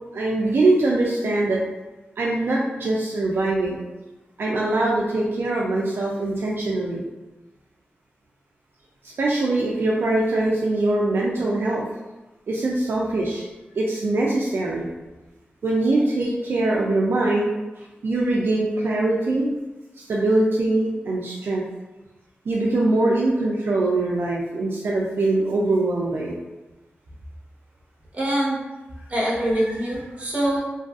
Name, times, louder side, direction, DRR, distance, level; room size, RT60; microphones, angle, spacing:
voice 1, 0.1-1.6 2.2-3.8 4.4-7.0 9.0-11.9 12.5-13.4 13.8-14.9 15.6-17.5 18.0-19.5 20.1-21.6 22.5-26.3, right 2 dB, 70° right, -4 dB, 0.4 m, -22 dB
voice 2, 28.1-28.6 29.1-30.6, right 1 dB, 35° right, -6 dB, 0.9 m, -24 dB
2.6 x 2.4 x 2.4 m, 1.1 s
wide cardioid pair, 85°, 4 cm